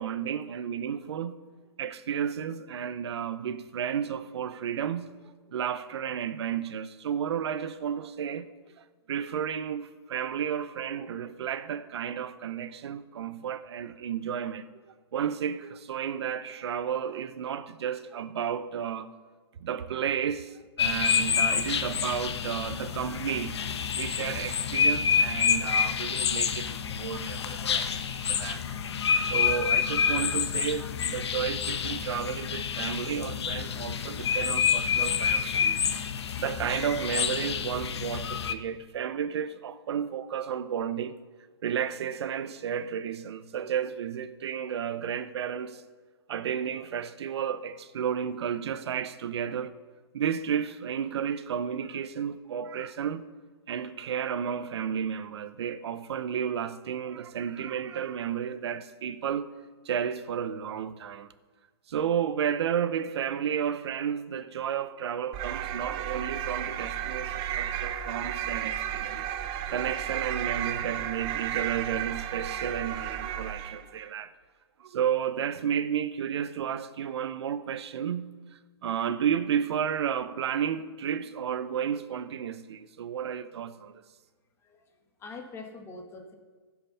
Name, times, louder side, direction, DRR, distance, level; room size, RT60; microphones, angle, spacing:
voice 1, 0.0-1.4 1.8-5.1 5.5-8.5 8.8-14.7 15.1-19.1 19.6-23.6 23.9-28.9 29.2-35.8 36.4-41.2 41.6-45.8 46.3-49.8 50.1-53.2 53.7-59.5 59.8-61.3 61.9-69.3 69.7-74.3 74.8-83.9, right 8 dB, 75° right, 0.6 m, -32 dB
sound 1, 20.8-38.5, left 7 dB, 75° left, 0.9 m, -28 dB
sound 2, 65.3-73.9, right 10 dB, 30° right, 0.6 m, -33 dB
voice 2, 84.6-86.4, left 3 dB, 15° left, 1.4 m, -44 dB
15.5 x 5.7 x 5.6 m
hypercardioid pair, 140°, 14 cm